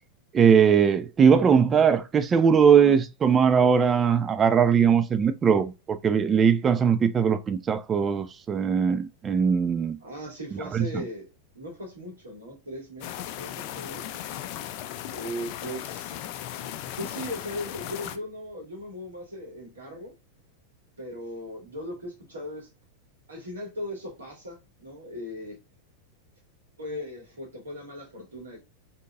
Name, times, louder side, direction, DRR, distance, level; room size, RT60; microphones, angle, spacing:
voice 1, 0.3-10.0 10.7-11.0, right 7 dB, 20° right, 0.5 m, -20 dB
voice 2, 10.0-11.3 11.5-14.0 15.1-16.2 16.9-20.1 21.0-22.7 23.3-25.6 26.8-28.6, left 1 dB, 70° right, 2.3 m, -38 dB
sound 1, 13.0-18.2, left 11 dB, 45° left, 0.5 m, -37 dB
3.8 x 3.7 x 2.4 m
figure-of-eight pair, 90°, 0 cm